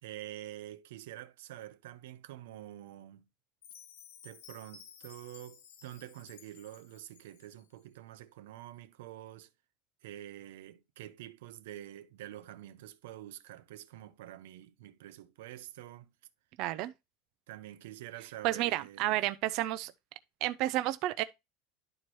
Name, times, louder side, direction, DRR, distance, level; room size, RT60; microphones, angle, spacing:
voice 1, 0.0-3.2 4.2-9.5 10.0-16.1 17.5-19.2, right 13 dB, 90° right, 0.7 m, -47 dB
Chime, 3.6-7.7, left 7 dB, 85° left, 1.6 m, -55 dB
voice 2, 16.6-16.9 18.4-19.9 20.4-21.2, right 16 dB, 45° right, 0.4 m, -31 dB
11.0 x 4.4 x 3.0 m
supercardioid pair, 175°, 0 cm